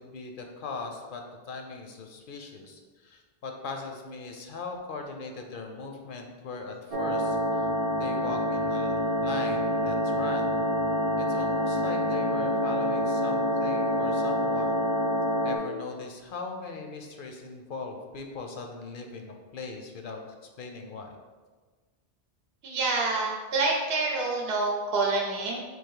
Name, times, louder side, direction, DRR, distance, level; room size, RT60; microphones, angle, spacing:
voice 1, 0.0-7.7 8.0-10.6 11.2-14.7 15.4-20.2 20.6-21.1, left 4 dB, 65° left, 3 dB, 0.7 m, -39 dB
sound 1, 6.9-15.6, equal, 40° right, 0.7 m, -27 dB
voice 2, 22.6-25.6, right 3 dB, 75° right, -1 dB, 0.9 m, -27 dB
3.8 x 2.7 x 4.6 m, 1.4 s
omnidirectional pair, 1.0 m